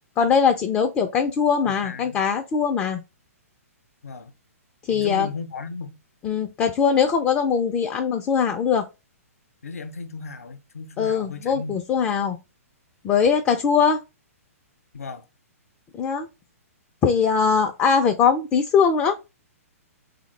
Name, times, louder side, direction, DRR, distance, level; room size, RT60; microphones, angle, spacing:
voice 1, 0.2-3.0 4.9-5.3 6.2-8.9 11.0-12.4 13.0-14.0 15.9-16.3 17.0-19.2, left 6 dB, 20° left, 0.3 m, -21 dB
voice 2, 1.7-2.2 4.0-4.3 4.9-6.0 9.6-12.0 14.9-15.2, left 4 dB, 70° left, 0.5 m, -36 dB
3.4 x 2.1 x 3.1 m
figure-of-eight pair, 120°, 8 cm